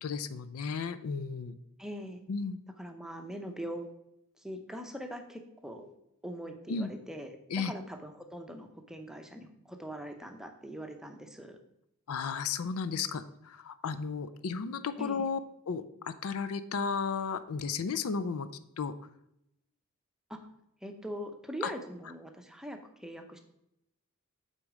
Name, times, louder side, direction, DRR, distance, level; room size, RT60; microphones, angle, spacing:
voice 1, 0.0-1.6 2.3-2.6 6.7-6.9 7.5-7.7 12.1-15.4 15.7-18.5 18.8-18.9 21.6-21.7, left 5 dB, 75° left, 13 dB, 0.5 m, -34 dB
voice 2, 1.8-2.2 2.8-3.9 4.4-5.9 6.2-11.6 15.0-15.3 20.3-20.4 20.8-23.4, equal, ahead, 5 dB, 0.6 m, -42 dB
8.1 x 4.1 x 4.8 m, 0.82 s
head